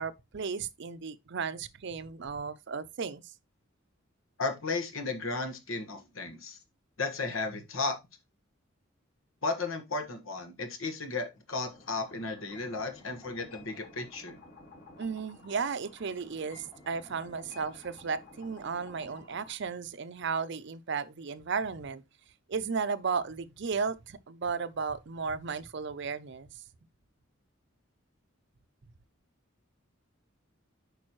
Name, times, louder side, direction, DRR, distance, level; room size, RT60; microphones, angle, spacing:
voice 1, 0.0-3.2 15.0-22.0 22.5-26.5, right 5 dB, 60° right, 0.6 m, -34 dB
voice 2, 4.4-6.6 7.0-8.0 9.4-14.4, left 3 dB, 80° left, 1.6 m, -34 dB
sound 1, 11.5-19.5, left 2 dB, 50° left, 3.3 m, -53 dB
8.6 x 5.3 x 3.0 m
head